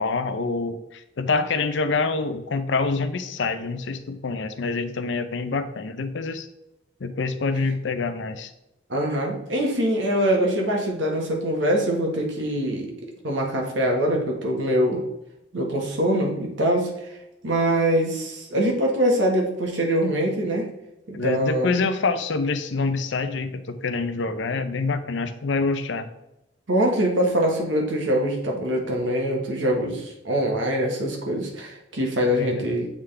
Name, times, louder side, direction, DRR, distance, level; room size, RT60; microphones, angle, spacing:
voice 1, 0.0-6.5 7.0-8.5 21.1-26.1 32.4-32.6, left 4 dB, 75° left, 10 dB, 0.6 m, -26 dB
voice 2, 8.9-12.9 13.2-15.0 15.5-16.9 17.4-20.7 21.1-21.8 26.7-32.9, equal, 85° right, 0 dB, 1.4 m, -23 dB
8.0 x 3.7 x 3.3 m, 0.88 s
head